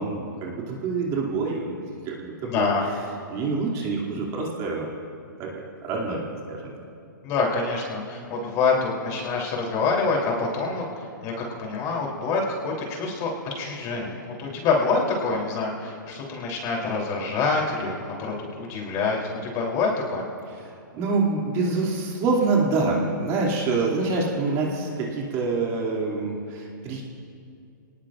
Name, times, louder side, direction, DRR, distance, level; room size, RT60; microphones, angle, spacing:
voice 1, 0.0-1.8 2.0-2.7 3.3-4.9 5.4-6.7 20.5-27.0, right 3 dB, 30° right, -3 dB, 2.7 m, -26 dB
voice 2, 2.4-2.8 7.2-20.3, left 4 dB, 30° left, -1 dB, 3.5 m, -26 dB
27.5 x 19.0 x 2.6 m, 2.4 s
hypercardioid pair, 145°, 11 cm